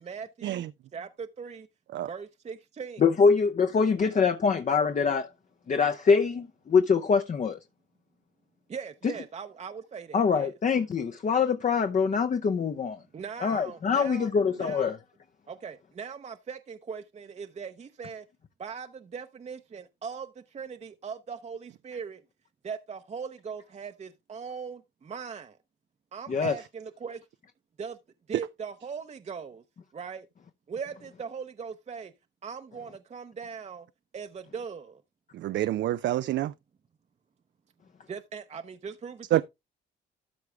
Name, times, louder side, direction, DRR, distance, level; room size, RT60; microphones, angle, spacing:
voice 1, 0.0-1.7 2.1-3.1 8.7-10.5 13.1-14.3 14.6-14.8 15.5-18.3 18.6-22.2 22.6-25.6 26.1-27.3 27.8-28.0 28.3-29.6 29.9-30.3 30.7-32.1 32.4-33.9 34.1-35.0 38.1-39.4, right 6 dB, 35° right, 0.7 m, -40 dB
voice 2, 3.0-5.3 5.7-7.6 10.1-13.0 13.4-15.0 26.3-26.5, left 5 dB, 40° left, 0.8 m, -24 dB
voice 3, 35.3-36.5 39.3-39.4, right 14 dB, 65° right, 0.4 m, -27 dB
13.0 x 4.7 x 3.3 m
cardioid pair, 90°, 20 cm